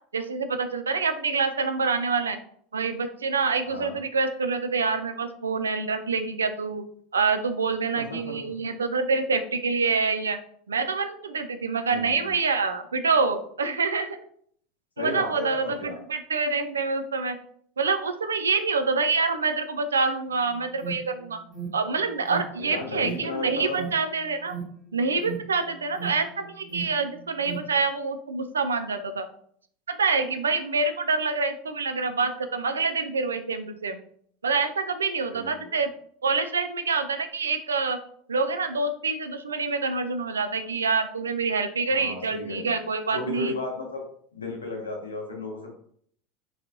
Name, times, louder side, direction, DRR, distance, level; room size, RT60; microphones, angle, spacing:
voice 1, 0.1-2.4 2.7-6.8 7.1-10.4 10.7-14.2 15.0-17.4 17.8-21.4 21.7-24.5 24.9-29.3 29.9-34.0 34.4-35.9 36.2-38.0 38.3-43.5, right 4 dB, 80° right, 8 dB, 0.3 m, -26 dB
voice 2, 7.9-8.3 11.9-12.3 15.0-16.0 22.6-23.8 35.3-35.8 41.9-42.8 43.1-44.0 44.3-45.7, left 2 dB, 85° left, 1 dB, 0.8 m, -34 dB
Alarm, 20.3-27.8, right 7 dB, 15° left, 0.9 m, -40 dB
3.1 x 2.8 x 2.5 m, 0.62 s
figure-of-eight pair, 80°, 0 cm